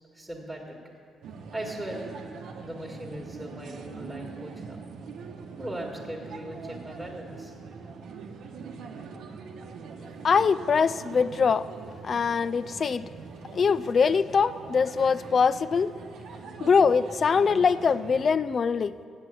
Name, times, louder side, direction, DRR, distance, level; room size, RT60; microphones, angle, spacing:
voice 1, 0.1-0.8 1.5-2.1 2.6-4.9 5.6-7.5, right 1 dB, 5° right, -3 dB, 1.7 m, -38 dB
sound 1, 1.2-18.3, right 5 dB, 75° right, 0.9 m, -43 dB
voice 2, 10.2-11.7 12.0-13.0 13.5-15.9 16.6-19.0, left 5 dB, 45° left, 16 dB, 0.3 m, -23 dB
8.0 x 7.6 x 8.3 m, 2.5 s
cardioid pair, 90°, 0 cm